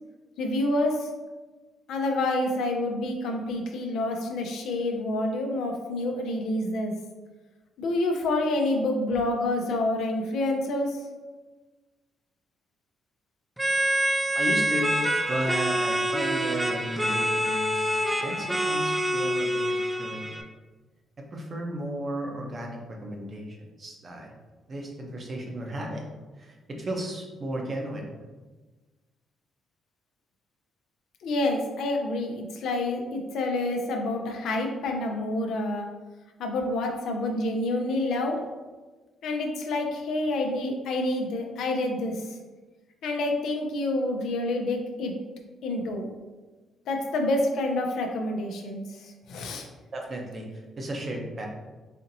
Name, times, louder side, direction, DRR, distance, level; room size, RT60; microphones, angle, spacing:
voice 1, 0.4-1.1 1.9-6.9 7.8-11.0 31.2-35.9 36.4-38.4 39.2-42.4 43.0-45.1 45.6-46.1 46.9-49.7, left 2 dB, 80° left, 2 dB, 0.5 m, -28 dB
sound 1, 13.6-20.4, equal, 10° right, 0.4 m, -26 dB
voice 2, 14.3-14.9 15.3-20.3 21.2-24.4 24.7-26.0 26.4-28.1 49.9-51.5, right 1 dB, 40° right, 1 dB, 0.7 m, -34 dB
4.2 x 2.8 x 2.6 m, 1.3 s
cardioid pair, 90°, 0 cm